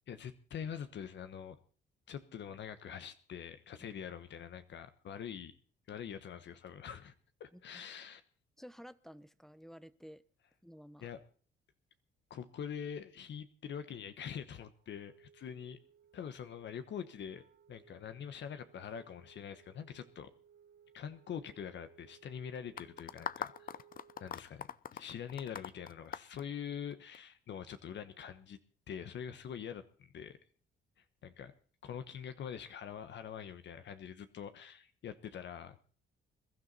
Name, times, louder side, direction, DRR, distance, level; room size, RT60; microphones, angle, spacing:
voice 1, 0.1-1.6 2.1-5.5 5.9-7.1 7.4-8.2 11.0-11.2 12.3-15.8 16.1-20.3 20.9-23.7 24.2-28.6 28.9-30.4 31.0-31.5 31.8-35.9, left 8 dB, 65° left, 10 dB, 1.2 m, -44 dB
voice 2, 8.6-10.2 10.6-11.1, equal, ahead, 16 dB, 0.9 m, -53 dB
Wind instrument woodwind instrument, 14.8-24.6, right 8 dB, 55° right, 0.9 m, -64 dB
sound 1, 22.8-27.2, left 8 dB, 45° left, 0.6 m, -42 dB
22.0 x 12.5 x 4.1 m, 0.43 s
cardioid pair, 90°, 20 cm